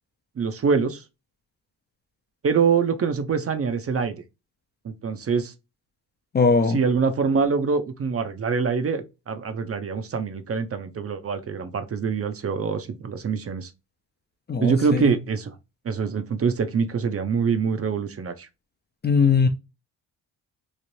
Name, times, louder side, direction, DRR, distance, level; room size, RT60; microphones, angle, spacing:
voice 1, 0.4-1.0 2.4-4.2 4.8-5.5 6.7-13.7 14.6-15.5 15.8-18.5, right 5 dB, 35° right, 0.5 m, -24 dB
voice 2, 6.3-6.8 14.5-15.1 19.0-19.5, left 5 dB, 25° left, 0.4 m, -20 dB
3.2 x 2.5 x 2.6 m
cardioid pair, 80°, 42 cm